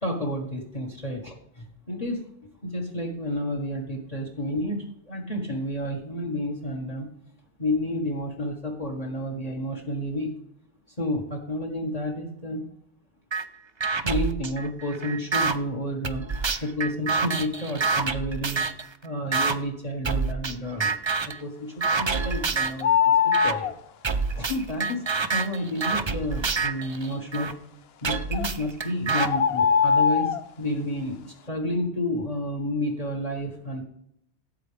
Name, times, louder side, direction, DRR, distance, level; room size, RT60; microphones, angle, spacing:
voice 1, 0.0-2.2 2.6-7.1 7.6-10.3 11.0-12.6 14.0-16.3 16.6-18.7 19.0-20.9 21.2-23.7 24.1-27.5 28.0-33.8, left 1 dB, 35° left, 1 dB, 1.7 m, -30 dB
sound 1, 13.3-13.4 13.8-15.6 16.0-18.9 19.3-19.6 20.0-20.5 20.8-21.4 21.8-22.8 23.3-23.5 24.0-27.5 28.0-29.3, right 4 dB, 35° right, 0.5 m, -27 dB
sound 2, 22.8-23.7 28.3-28.5 29.2-30.4, left 7 dB, 65° left, 0.8 m, -21 dB
17.0 x 8.6 x 3.4 m, 0.73 s
omnidirectional pair, 1.2 m